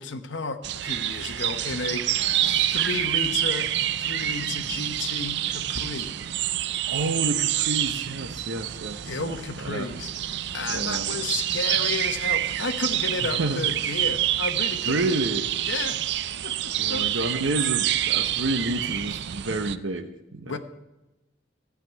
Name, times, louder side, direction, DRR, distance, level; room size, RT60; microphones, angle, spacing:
voice 1, 0.0-3.7 4.0-6.2 9.0-10.1 10.5-15.1 15.7-16.0 16.4-17.1 20.5-20.6, left 3 dB, 70° left, 7 dB, 0.9 m, -33 dB
sound 1, 0.6-19.8, right 12 dB, 60° right, 0.4 m, -27 dB
voice 2, 2.2-2.7 6.9-9.3 9.6-9.9 10.7-11.3 13.2-13.7 14.8-15.5 16.8-20.6, right 2 dB, 80° right, 7 dB, 0.9 m, -30 dB
14.0 x 6.0 x 9.2 m, 0.99 s
head